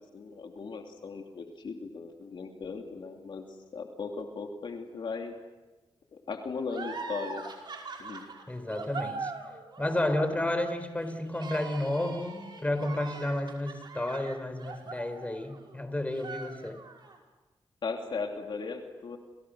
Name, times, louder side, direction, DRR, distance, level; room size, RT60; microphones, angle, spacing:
voice 1, 0.0-3.4 3.7-5.3 6.1-7.4 8.0-8.3 17.8-19.2, left 4 dB, 60° left, 2.9 m, -37 dB
sound 1, 6.7-15.8 16.1-17.2, right 4 dB, 55° right, 5.5 m, -42 dB
voice 2, 8.5-9.3 9.8-16.8, left 1 dB, 15° left, 4.1 m, -31 dB
30.0 x 29.5 x 6.4 m
cardioid pair, 90°, 9 cm